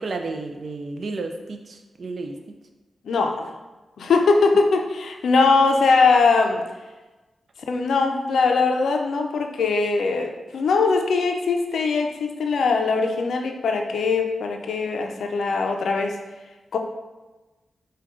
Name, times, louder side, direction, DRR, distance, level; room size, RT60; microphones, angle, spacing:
voice 1, 0.0-2.3, right 3 dB, 65° right, 5 dB, 0.4 m, -32 dB
voice 2, 3.0-3.4 4.0-6.6 7.7-16.2 16.7-16.8, left 4 dB, 85° left, 4 dB, 0.4 m, -21 dB
4.8 x 2.2 x 3.6 m, 1.2 s
cardioid pair, 55°, 0 cm